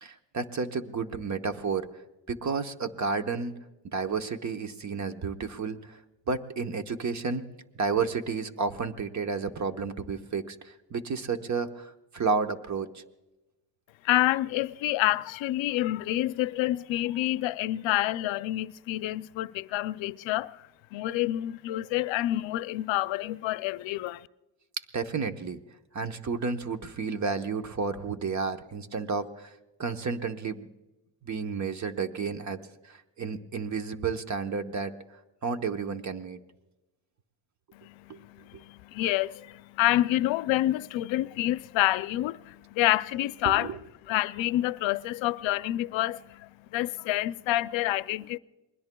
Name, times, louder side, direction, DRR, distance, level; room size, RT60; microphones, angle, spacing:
voice 1, 0.0-1.9 2.3-3.5 3.9-6.0 6.3-7.4 7.7-13.0 24.9-25.6 25.9-29.5 29.8-30.7 31.2-34.9 35.4-36.4 38.1-38.2 43.4-43.8, right 5 dB, 40° right, 1.1 m, -31 dB
voice 2, 14.0-20.6 20.9-24.3 37.7-43.7 44.1-48.4, left 15 dB, 85° left, 0.6 m, -28 dB
28.0 x 21.0 x 2.3 m
cardioid pair, 100°, 45 cm